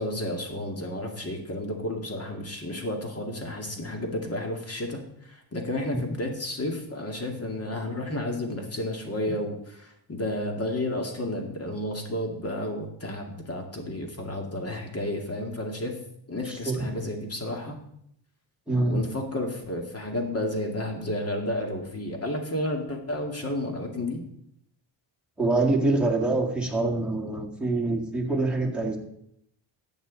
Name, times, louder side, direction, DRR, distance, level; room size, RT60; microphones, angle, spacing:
voice 1, 0.0-5.0 5.3-16.0 16.3-17.8 18.9-24.2, left 1 dB, 30° left, 3 dB, 2.3 m, -31 dB
voice 2, 16.5-16.9 18.7-19.0 25.4-29.0, right 2 dB, ahead, -1 dB, 2.1 m, -25 dB
12.5 x 8.4 x 4.1 m, 0.74 s
cardioid pair, 95°, 46 cm